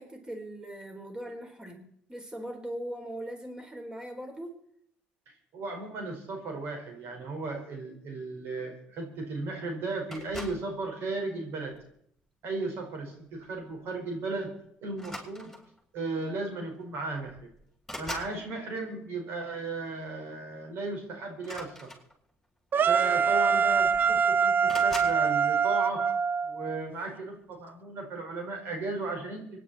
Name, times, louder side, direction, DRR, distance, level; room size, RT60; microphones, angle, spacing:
voice 1, 0.0-4.6, right 1 dB, 20° right, 3 dB, 4.3 m, -40 dB
voice 2, 5.5-11.7 12.4-14.5 14.8-15.5 15.9-17.5 18.0-21.9 22.8-24.5 24.8-26.0 26.4-29.4, right 3 dB, 65° right, 3 dB, 4.9 m, -35 dB
sound 1, 10.1-10.7 11.6-11.9 13.4-13.6 13.9-14.1 14.9-15.8 16.8-16.9 17.2-18.4 21.4-22.5 23.4-23.5 23.7-24.2 24.7-25.2, left 1 dB, ahead, 7.4 m, -42 dB
sound 2, 22.7-26.8, right 6 dB, 50° right, 0.6 m, -24 dB
25.5 x 11.0 x 4.3 m, 0.68 s
hypercardioid pair, 60°, 4 cm